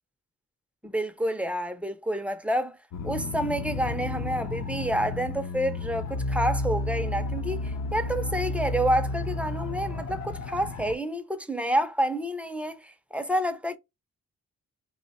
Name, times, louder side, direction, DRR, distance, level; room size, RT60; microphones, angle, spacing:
voice 1, 0.8-2.8 3.0-13.8, right 1 dB, 5° right, 0.4 m, -29 dB
sound 1, 2.9-11.0, left 2 dB, 50° left, 0.5 m, -32 dB
2.9 x 2.1 x 4.0 m
wide cardioid pair, 150°, 34 cm